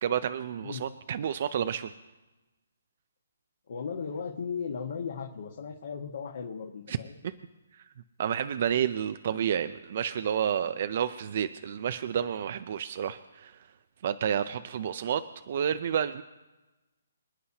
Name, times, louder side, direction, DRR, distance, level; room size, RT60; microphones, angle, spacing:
voice 1, 0.0-1.9 6.9-7.0 7.7-7.8 8.2-13.7 14.0-16.2, right 8 dB, 45° right, 12 dB, 0.5 m, -30 dB
voice 2, 3.7-7.2, left 6 dB, 55° left, -1 dB, 1.7 m, -36 dB
26.5 x 9.6 x 2.9 m, 1.1 s
hypercardioid pair, 160°, 0 cm